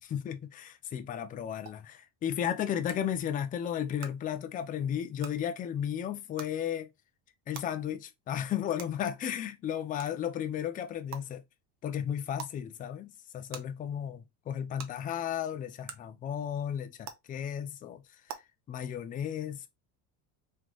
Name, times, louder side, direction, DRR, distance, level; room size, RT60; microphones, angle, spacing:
voice 1, 0.0-6.9 7.5-11.4 11.8-18.0 18.7-19.7, left 9 dB, 20° left, 0.3 m, -34 dB
sound 1, 1.7-1.8 2.9-3.0 4.0-4.1 5.2-5.3 6.4-6.5 7.5-7.6 8.8-8.9 10.0-10.1 11.1-11.2 12.4-12.5 13.5-13.6 14.8-14.9 15.9-16.0 17.0-17.1 18.3-18.4, right 8 dB, 40° right, 0.8 m, -41 dB
3.7 x 3.2 x 3.0 m
cardioid pair, 145°, 42 cm